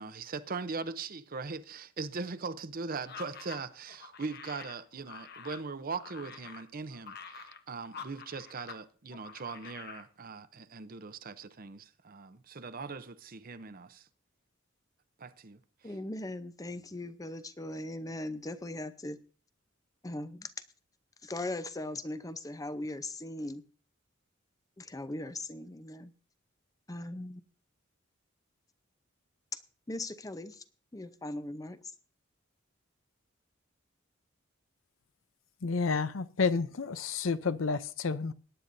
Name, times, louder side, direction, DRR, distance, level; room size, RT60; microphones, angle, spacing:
voice 1, 0.0-14.1 15.2-15.9, right 4 dB, 45° right, 0.7 m, -40 dB
sound 1, 3.0-8.8 9.1-10.1, left 6 dB, 50° left, 1.0 m, -47 dB
voice 2, 15.8-19.2 20.0-20.5 21.2-23.6 24.8-26.1 26.9-27.4 29.9-30.6 30.9-31.8, left 1 dB, 15° left, 0.6 m, -39 dB
voice 3, 35.6-38.3, left 4 dB, 70° left, 0.6 m, -30 dB
20.0 x 9.8 x 2.7 m
head